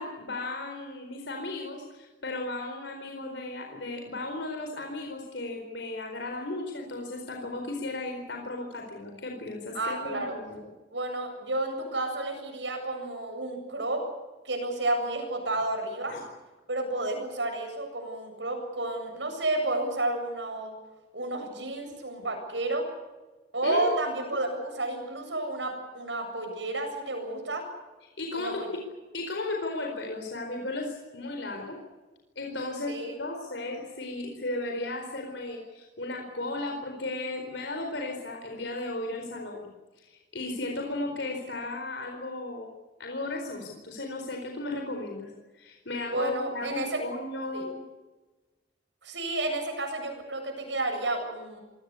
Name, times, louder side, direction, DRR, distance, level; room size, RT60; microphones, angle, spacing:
voice 1, 0.0-10.6 16.1-16.2 23.6-24.0 24.2-24.4 28.2-28.7 29.1-31.8 32.4-39.7 40.0-42.7 43.0-47.8, left 2 dB, 75° left, 2 dB, 4.4 m, -35 dB
voice 2, 9.7-10.3 10.9-14.0 14.4-16.1 16.7-20.7 21.1-22.9 23.5-27.6 28.3-28.7 32.9-33.2 46.1-47.0 47.5-47.6 49.0-51.6, right 2 dB, 80° right, 4 dB, 7.8 m, -31 dB
26.0 x 18.0 x 8.4 m, 1.2 s
head